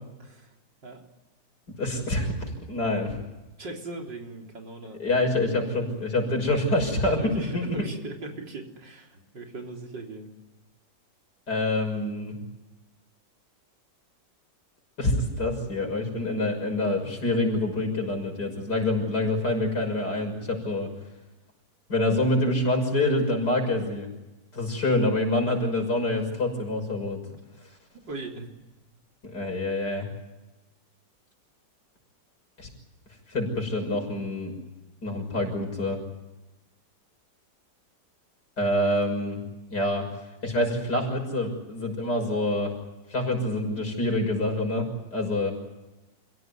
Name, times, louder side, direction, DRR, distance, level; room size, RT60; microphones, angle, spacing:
voice 1, 0.2-0.5 0.8-1.0 3.6-5.0 7.1-10.3 28.1-28.5, right 2 dB, 75° right, 2 dB, 4.4 m, -39 dB
voice 2, 1.8-2.3 2.7-3.2 5.0-7.8 11.5-12.3 15.0-20.9 21.9-24.1 24.5-27.2 29.3-30.1 32.6-32.7 33.3-34.6 35.0-36.0 38.6-39.4 39.7-40.1 40.4-42.7 43.1-45.5, left 1 dB, 65° left, 3 dB, 6.9 m, -26 dB
28.5 x 17.0 x 9.6 m, 1.0 s
omnidirectional pair, 1.9 m